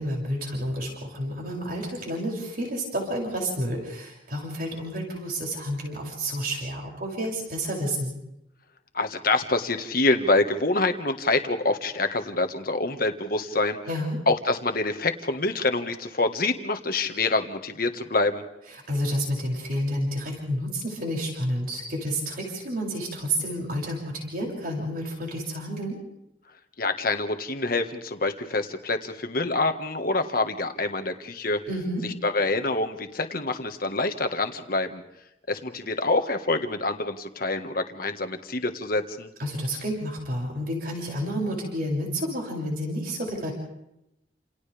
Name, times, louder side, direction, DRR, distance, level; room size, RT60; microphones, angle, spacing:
voice 1, 0.0-8.1 13.9-14.2 18.9-26.0 31.7-32.0 39.4-43.5, equal, 55° right, -1 dB, 6.9 m, -30 dB
voice 2, 8.9-13.8 14.3-18.4 26.8-31.6 32.0-35.0 35.5-39.3, left 2 dB, 50° left, 7 dB, 1.7 m, -26 dB
29.5 x 28.5 x 3.5 m, 0.86 s
head